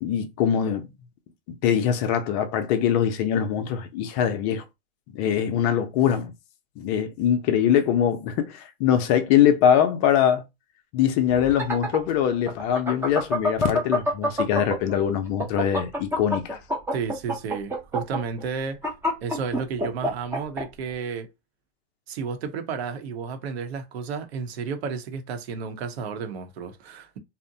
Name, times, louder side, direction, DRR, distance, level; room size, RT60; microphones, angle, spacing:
voice 1, 0.0-0.9 1.6-4.6 5.1-6.3 6.8-10.4 10.9-16.6, left 9 dB, 40° left, 0.5 m, -22 dB
sound 1, 11.3-14.9 15.3-20.6, equal, 5° right, 0.7 m, -25 dB
voice 2, 16.9-18.8 19.2-21.3 22.1-27.2, right 5 dB, 70° right, 0.9 m, -32 dB
2.7 x 2.1 x 2.6 m
hypercardioid pair, 130°, 33 cm